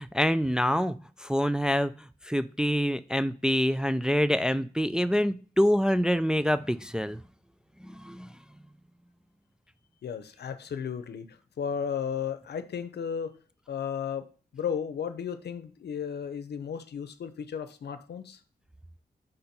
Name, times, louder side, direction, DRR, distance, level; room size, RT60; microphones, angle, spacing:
voice 1, 0.0-1.9 2.2-7.2 7.8-8.3, equal, 5° right, 11 dB, 0.3 m, -26 dB
voice 2, 10.0-13.3 13.7-14.3 14.5-18.4, left 7 dB, 80° left, 10 dB, 0.7 m, -34 dB
5.4 x 4.3 x 5.3 m, 0.39 s
cardioid pair, 80°, 17 cm